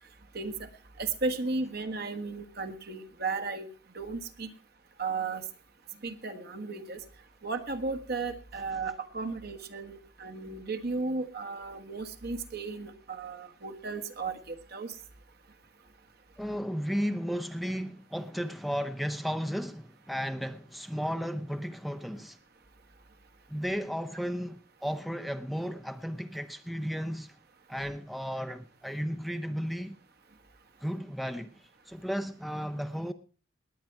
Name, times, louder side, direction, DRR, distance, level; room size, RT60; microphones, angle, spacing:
voice 1, 0.3-0.7 1.0-3.7 3.9-4.5 5.0-5.4 6.0-7.0 7.4-14.9, right 3 dB, 55° right, 1.5 m, -35 dB
voice 2, 16.4-22.4 23.5-27.4 27.7-30.0 30.8-33.1, equal, ahead, 0.6 m, -34 dB
19.5 x 9.3 x 4.6 m
head